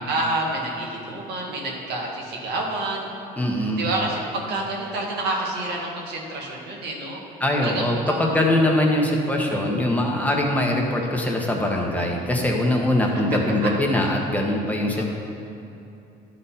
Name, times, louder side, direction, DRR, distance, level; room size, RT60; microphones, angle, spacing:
voice 1, 0.1-3.1 3.8-7.2 7.6-8.2 15.0-15.1, right 2 dB, 80° right, -2 dB, 1.7 m, -28 dB
voice 2, 3.4-3.9 7.4-15.0, left 1 dB, 10° left, -1 dB, 1.1 m, -22 dB
11.5 x 4.1 x 5.6 m, 2.8 s
cardioid pair, 110°, 17 cm